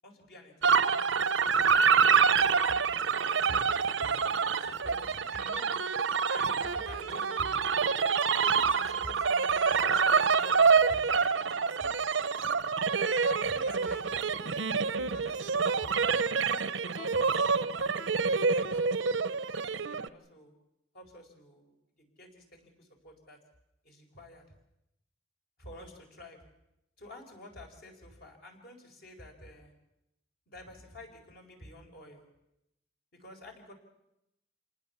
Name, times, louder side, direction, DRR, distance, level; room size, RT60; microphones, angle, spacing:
voice 1, 0.0-2.0 2.3-2.9 3.3-5.8 6.3-7.7 8.4-12.1 13.0-16.2 16.6-18.9 19.5-20.5 20.9-21.7 22.0-23.4 23.8-24.5 25.6-26.4 27.0-29.7 30.5-32.2 33.1-33.7, left 1 dB, 60° left, 3 dB, 5.0 m, -49 dB
sound 1, 0.6-20.1, right 5 dB, 90° right, 0.8 m, -27 dB
27.5 x 19.5 x 7.1 m, 0.85 s
head